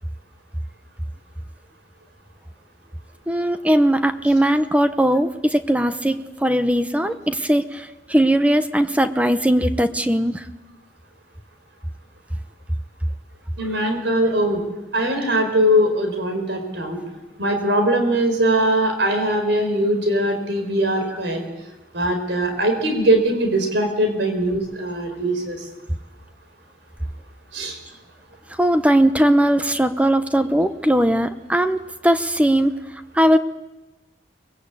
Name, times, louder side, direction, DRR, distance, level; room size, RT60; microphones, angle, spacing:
voice 1, 3.3-10.4 28.6-32.7 33.1-33.4, right 1 dB, 5° right, 9 dB, 0.8 m, -19 dB
voice 2, 13.6-14.6 14.9-17.0 17.4-21.4 21.9-25.6 27.5-27.8, right 1 dB, 70° right, 5 dB, 4.8 m, -21 dB
24.0 x 21.0 x 8.4 m, 1.1 s
head